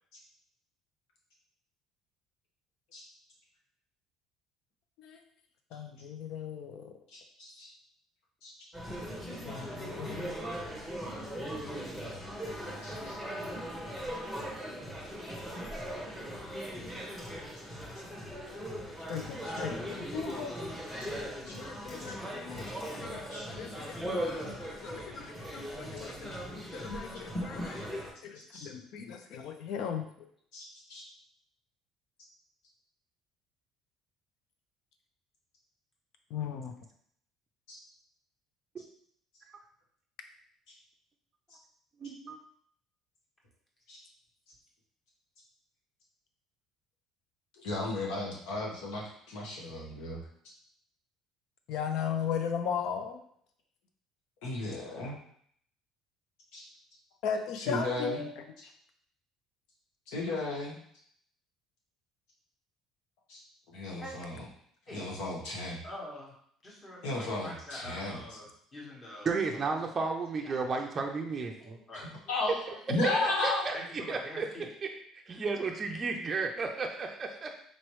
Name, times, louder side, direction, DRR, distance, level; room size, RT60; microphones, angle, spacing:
voice 1, 5.7-6.9 9.3-10.4 12.5-12.6 13.0-13.1 16.8-16.9 19.0-20.5 21.1-23.2 23.6-26.4 26.7-27.8 28.2-30.0 36.3-36.7 51.7-53.2 57.2-58.3 58.6-58.7, left 7 dB, 65° left, 6 dB, 0.5 m, -37 dB
voice 2, 7.1-7.7 8.4-8.5 12.8-13.2 21.0-21.1 21.5-21.6 22.1-22.2 23.3-23.4 26.7-26.8 28.3-28.7 30.5-31.0 37.7-37.8 40.7-40.8 43.9-44.0 47.6-50.2 54.4-55.2 56.5-56.7 57.6-58.2 60.1-60.8 63.3-63.4 63.7-64.5 64.9-65.8 67.0-68.4 71.9-72.6 72.9-73.7, left 2 dB, 80° left, -3 dB, 1.3 m, -35 dB
sound 1, 8.7-28.1, equal, 10° left, 1.1 m, -39 dB
voice 3, 42.0-42.4 69.2-71.8 73.2-73.7 74.1-74.5 74.8-75.0 75.3-77.5, right 4 dB, 25° right, 1 dB, 0.4 m, -33 dB
voice 4, 65.8-66.3 66.6-68.5 68.7-69.3 69.6-70.1 70.4-70.5 71.6-72.1 72.6-72.8 73.7-74.7, left 1 dB, 30° left, -4 dB, 1.5 m, -45 dB
4.2 x 3.0 x 3.1 m, 0.65 s
cardioid pair, 135°, 0 cm